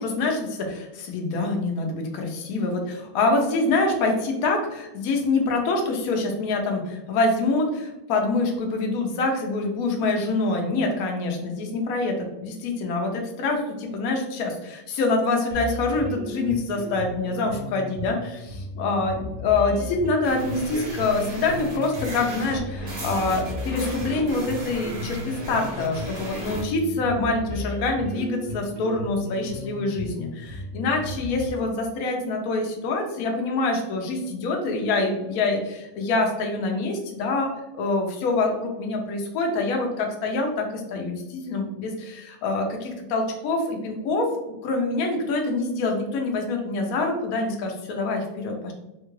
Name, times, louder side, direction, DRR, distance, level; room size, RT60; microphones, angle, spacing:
voice 1, 0.0-44.3 44.6-48.7, left 3 dB, 70° left, 2 dB, 1.0 m, -25 dB
sound 1, 15.5-31.5, left 1 dB, 90° right, 1.2 m, -35 dB
sound 2, 20.2-26.6, right 1 dB, 45° right, 0.8 m, -36 dB
3.6 x 2.3 x 3.0 m, 0.97 s
omnidirectional pair, 1.7 m